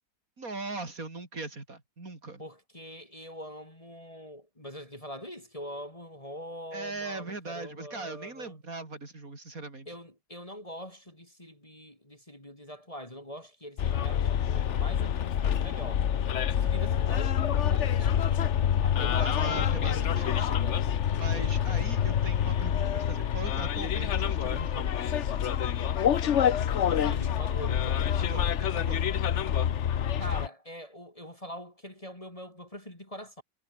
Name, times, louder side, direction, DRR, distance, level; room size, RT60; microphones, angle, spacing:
voice 1, 0.4-2.4 6.7-9.9 19.2-20.7 21.2-24.9 28.2-29.2, right 3 dB, 65° right, 4.9 m, -40 dB
voice 2, 2.4-8.6 9.9-16.1 16.5-18.5 18.8-20.8 21.3-21.5 26.9-28.0 30.2-33.4, equal, 20° left, 4.6 m, -43 dB
Bus, 13.8-30.5, left 9 dB, 55° left, 1.1 m, -27 dB
omnidirectional pair, 1.6 m